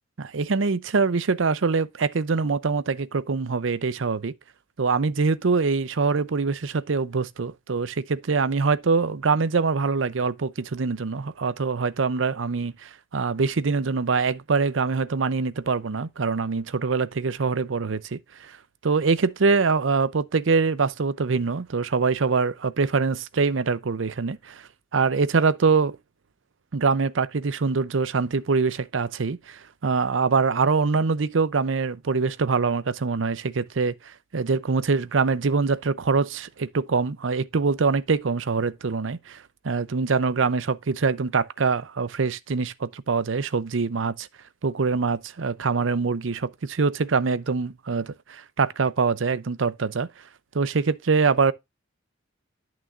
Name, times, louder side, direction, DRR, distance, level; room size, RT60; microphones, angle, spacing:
voice 1, 0.2-4.3 4.8-18.6 18.8-24.6 24.9-26.0 26.7-44.3 44.6-50.1 50.5-51.5, right 4 dB, 75° right, 0.6 m, -24 dB
11.0 x 6.2 x 2.5 m
head